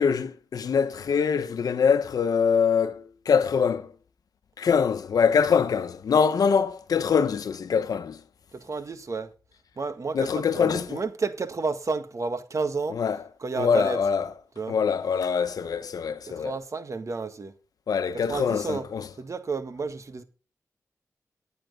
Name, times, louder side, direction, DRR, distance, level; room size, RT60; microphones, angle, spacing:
voice 1, 0.0-3.9 4.6-8.2 10.1-11.0 12.9-13.2 13.6-14.3 14.7-16.6 17.9-19.1, left 6 dB, 80° left, 1.0 m, -24 dB
voice 2, 8.5-9.3 9.8-13.0 13.4-14.0 14.6-14.8 16.3-17.5 18.3-18.9 19.2-20.2, right 4 dB, 55° right, 1.6 m, -31 dB
11.5 x 9.1 x 5.2 m
cardioid pair, 55°, 6 cm